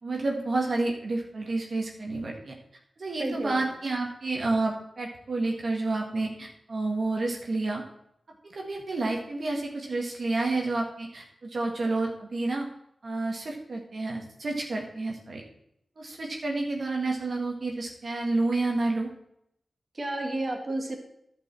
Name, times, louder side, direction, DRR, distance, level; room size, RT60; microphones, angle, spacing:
voice 1, 0.0-2.6 3.0-7.8 8.4-12.7 13.0-15.4 16.0-19.1, right 2 dB, 60° right, 0 dB, 1.8 m, -30 dB
voice 2, 3.2-3.7 19.9-21.0, right 1 dB, 40° right, 2 dB, 1.9 m, -31 dB
11.0 x 5.4 x 7.5 m, 0.76 s
cardioid pair, 60°, 0 cm